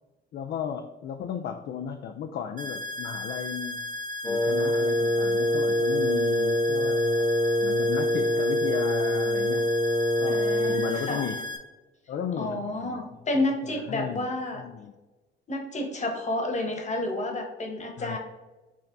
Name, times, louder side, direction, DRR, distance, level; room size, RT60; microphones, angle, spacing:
voice 1, 0.3-3.9 4.2-7.3 7.6-9.7 10.2-11.5 12.1-13.1 13.3-14.9 18.0-18.2, left 8 dB, 55° left, 6 dB, 0.4 m, -35 dB
sound 1, 2.6-11.6, left 2 dB, 45° right, 0.7 m, -35 dB
Wind instrument woodwind instrument, 4.2-11.0, left 1 dB, 5° left, 0.5 m, -25 dB
voice 2, 10.3-11.3 12.4-14.6 15.5-18.2, left 2 dB, 35° left, 3 dB, 1.1 m, -30 dB
6.1 x 3.3 x 2.6 m, 1.1 s
cardioid pair, 90°, 20 cm